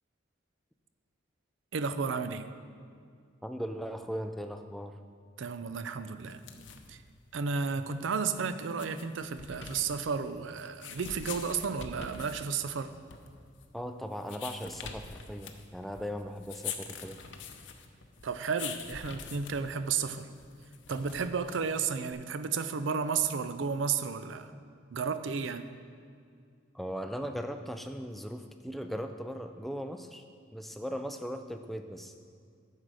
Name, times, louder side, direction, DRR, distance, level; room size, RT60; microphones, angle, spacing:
voice 1, 1.7-2.4 5.4-6.4 6.9-7.0 7.3-12.9 18.2-20.3 20.9-24.5 24.9-25.7, right 5 dB, 80° right, 11 dB, 0.5 m, -32 dB
voice 2, 3.4-5.0 13.7-17.2 26.7-30.2 30.5-32.1, equal, ahead, 6 dB, 0.3 m, -38 dB
sound 1, 6.2-22.1, left 6 dB, 75° left, 0.7 m, -45 dB
9.9 x 6.6 x 4.9 m, 2.3 s
head